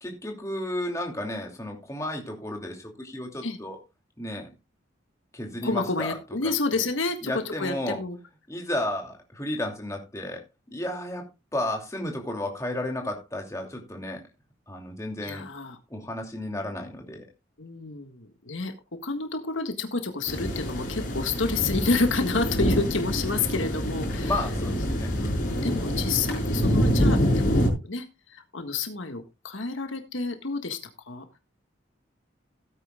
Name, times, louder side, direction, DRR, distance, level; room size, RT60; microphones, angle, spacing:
voice 1, 0.0-3.8 4.2-4.5 5.3-6.2 6.7-6.9 7.2-8.0 8.5-10.4 10.7-14.2 14.7-15.5 15.9-17.3 24.2-25.2, left 1 dB, 15° left, 2.7 m, -33 dB
voice 2, 5.6-8.2 15.2-15.8 17.6-24.4 25.2-25.4 25.6-30.8 31.1-31.3, left 3 dB, 80° left, 1.7 m, -29 dB
sound 1, 20.3-27.7, equal, 45° left, 5.6 m, -26 dB
17.0 x 9.4 x 2.4 m
head